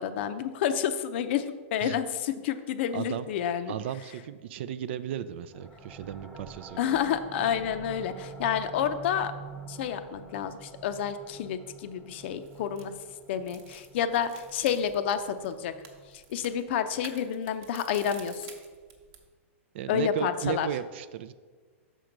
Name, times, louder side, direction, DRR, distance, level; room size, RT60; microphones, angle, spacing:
voice 1, 0.0-3.8 6.8-9.3 9.7-12.9 13.3-15.7 16.3-18.5 19.9-20.7, left 8 dB, 55° left, 10 dB, 0.5 m, -29 dB
voice 2, 2.9-3.3 3.7-6.8 19.7-21.3, right 10 dB, 55° right, 14 dB, 0.4 m, -35 dB
sound 1, 5.5-16.9, right 5 dB, ahead, 0.6 m, -47 dB
sound 2, 12.3-19.3, right 6 dB, 35° right, 0.9 m, -52 dB
6.3 x 4.5 x 5.1 m, 1.5 s
hypercardioid pair, 145°, 7 cm